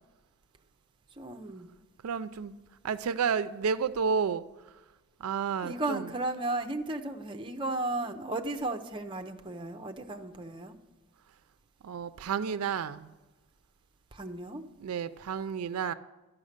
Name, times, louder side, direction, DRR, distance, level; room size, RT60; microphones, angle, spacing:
voice 1, 1.2-1.7 5.6-10.8 14.1-14.6, right 2 dB, 20° right, 0.6 m, -34 dB
voice 2, 2.0-2.5 2.8-4.4 5.2-6.0 11.8-13.1 14.8-15.9, right 6 dB, 80° right, 0.4 m, -31 dB
11.5 x 5.9 x 6.5 m
head